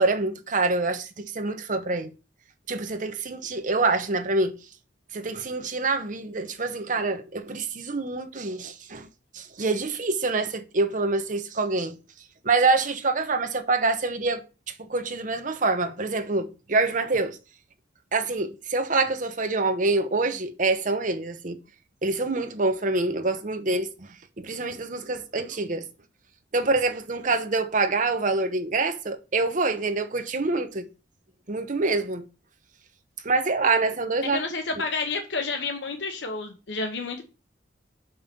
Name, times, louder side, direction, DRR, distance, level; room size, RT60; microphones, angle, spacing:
voice 1, 0.0-2.1 2.7-4.5 5.1-9.1 9.3-12.0 12.4-14.4 14.9-17.4 18.1-21.6 22.0-24.1 24.4-25.9 26.5-30.9 31.5-32.2 33.2-34.4, right 3 dB, 45° right, 0.9 m, -26 dB
voice 2, 34.3-37.2, left 3 dB, 75° left, 1.1 m, -30 dB
5.8 x 5.5 x 5.2 m
head